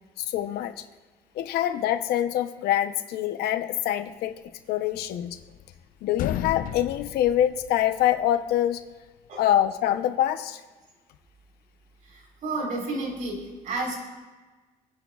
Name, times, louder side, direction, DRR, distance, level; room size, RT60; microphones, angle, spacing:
voice 1, 0.2-0.7 1.3-4.4 4.7-5.4 6.0-8.8 9.4-10.6, left 12 dB, 90° left, 9 dB, 0.8 m, -25 dB
sound 1, 5.0-5.8 6.1-8.2, left 11 dB, 60° left, 0.6 m, -34 dB
voice 2, 12.0-14.0, right 2 dB, 55° right, 0 dB, 4.1 m, -31 dB
27.5 x 10.5 x 2.4 m, 1.3 s
cardioid pair, 150°, 16 cm